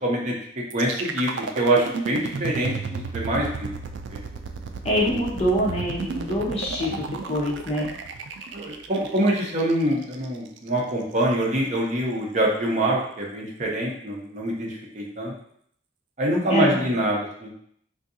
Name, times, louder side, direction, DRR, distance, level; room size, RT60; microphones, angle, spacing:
voice 1, 0.0-0.3 0.7-3.7 4.1-4.2 5.0-5.2 8.5-15.3 16.2-17.5, right 1 dB, 40° right, -2 dB, 0.7 m, -25 dB
sound 1, 0.7-10.7, right 4 dB, 85° right, 0.3 m, -33 dB
voice 2, 4.8-7.9 16.5-16.8, equal, 35° left, -3 dB, 0.8 m, -25 dB
3.7 x 2.7 x 2.6 m, 0.66 s
head